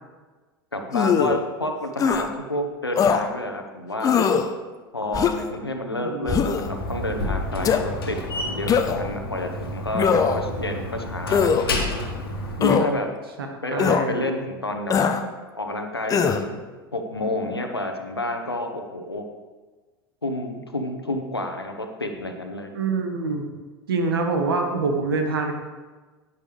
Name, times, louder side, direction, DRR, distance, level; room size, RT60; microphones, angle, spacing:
voice 1, 0.7-4.3 4.9-11.5 12.6-13.1 13.6-15.0 15.5-16.6 16.9-19.3 20.2-22.7, left 1 dB, 90° left, 5 dB, 1.1 m, -29 dB
sound 1, 0.9-1.4 2.0-2.2 3.0-3.2 4.0-4.5 5.1-5.5 6.3-6.7 7.6-7.8 8.7-9.1 9.9-10.5 11.3-11.6 12.6-12.9 13.8-14.0 14.9-15.2 16.1-16.4, left 6 dB, 30° left, 0.8 m, -20 dB
voice 2, 6.0-6.5 13.7-14.1 22.7-23.4 23.9-25.5, right 4 dB, 70° right, 4 dB, 1.5 m, -25 dB
Slam, 6.5-12.7, left 1 dB, 70° left, 1.6 m, -30 dB
11.0 x 10.0 x 3.4 m, 1.3 s
figure-of-eight pair, 80°, 13 cm